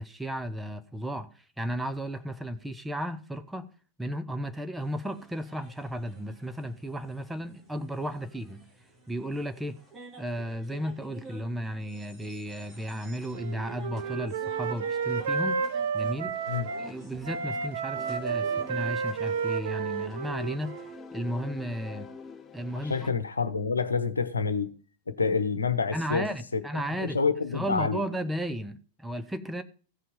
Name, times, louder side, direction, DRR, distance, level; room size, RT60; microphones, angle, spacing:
voice 1, 0.0-3.7 4.0-8.6 9.1-9.8 10.2-15.6 15.9-16.4 16.8-20.7 21.1-22.1 22.5-22.9 25.9-27.2 27.5-29.6, equal, 5° right, 0.9 m, -34 dB
sound 1, 4.8-21.0, right 3 dB, 20° right, 3.1 m, -51 dB
Wind instrument woodwind instrument, 13.3-16.9 17.2-21.0, right 6 dB, 60° right, 1.0 m, -31 dB
sound 2, 16.3-17.6 17.9-23.1, left 5 dB, 20° left, 1.0 m, -46 dB
voice 2, 22.8-24.7 25.1-28.0, left 5 dB, 75° left, 1.0 m, -28 dB
15.5 x 5.7 x 5.4 m
figure-of-eight pair, 90°, 0 cm